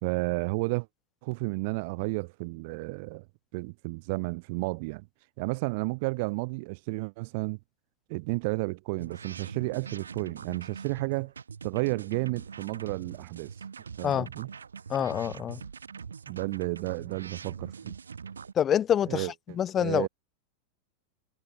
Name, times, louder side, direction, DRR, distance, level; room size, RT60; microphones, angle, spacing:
voice 1, 0.0-0.9 1.2-3.2 3.5-5.1 5.4-7.6 8.1-11.3 11.6-13.5 14.0-14.5 16.3-18.0 19.1-19.3 19.8-20.1, right 27 dB, 50° right, 1.9 m, -32 dB
sound 1, 9.0-18.5, right 6 dB, 70° right, 5.4 m, -43 dB
voice 2, 14.9-15.6 18.6-19.3 19.5-20.1, left 9 dB, 25° left, 0.6 m, -26 dB
figure-of-eight pair, 90°, 0 cm